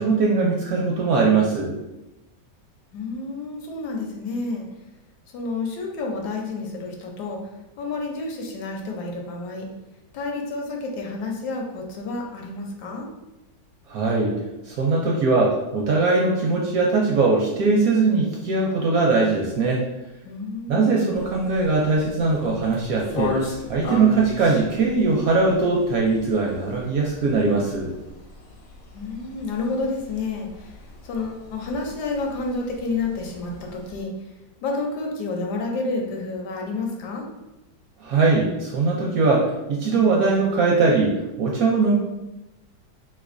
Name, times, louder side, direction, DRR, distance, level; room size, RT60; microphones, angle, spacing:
voice 1, 0.0-1.7 13.9-14.3 14.7-19.8 20.7-23.3 23.7-27.9 38.0-42.0, right 3 dB, 70° right, -2 dB, 0.8 m, -21 dB
voice 2, 2.9-4.6 5.3-7.4 7.8-9.7 10.1-13.1 20.2-21.0 28.9-30.7 31.0-34.1 34.6-37.3, left 3 dB, 75° left, 1 dB, 1.1 m, -30 dB
sound 1, 21.1-34.0, left 3 dB, 50° left, 1.1 m, -37 dB
3.2 x 3.1 x 2.4 m, 0.98 s
omnidirectional pair, 1.9 m